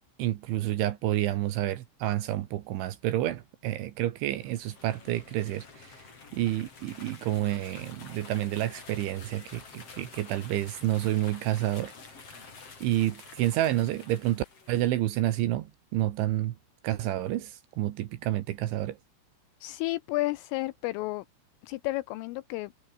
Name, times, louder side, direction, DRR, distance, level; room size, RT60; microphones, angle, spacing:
voice 1, 0.2-5.6 6.3-11.9 12.8-15.7 15.9-16.5 16.8-19.0, right 14 dB, 70° right, 3.5 m, -29 dB
sound 1, 4.2-15.0, left 4 dB, 30° left, 4.9 m, -49 dB
voice 2, 19.6-21.2 21.6-22.7, left 19 dB, 80° left, 3.3 m, -32 dB
omnidirectional pair, 5.9 m